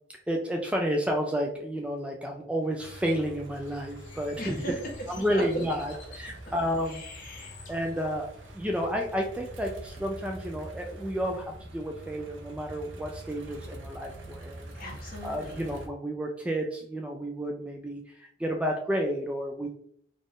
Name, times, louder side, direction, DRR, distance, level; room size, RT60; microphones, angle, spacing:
voice 1, 0.3-4.5 5.1-7.0 7.7-8.3 8.5-14.7 15.2-19.7, equal, 5° right, 1 dB, 0.3 m, -31 dB
sound 1, 2.8-15.9, right 1 dB, 85° right, 0.7 m, -45 dB
Bird, 3.5-8.5, left 5 dB, 85° left, 0.8 m, -52 dB
voice 2, 4.4-5.4 6.8-7.6 14.7-15.6, equal, 50° left, -3 dB, 1.4 m, -38 dB
4.0 x 2.4 x 3.6 m, 0.66 s
head